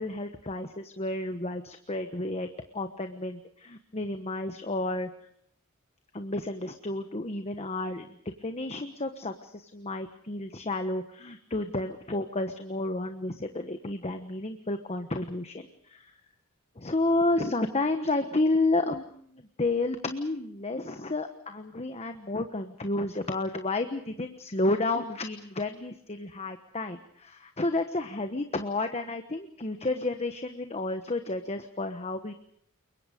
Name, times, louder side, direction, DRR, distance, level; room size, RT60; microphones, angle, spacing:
voice 1, 0.0-2.5 2.7-5.1 6.1-8.1 8.4-16.1 16.8-32.3, left 2 dB, 30° left, 7 dB, 1.2 m, -31 dB
29.0 x 23.0 x 5.2 m, 0.63 s
head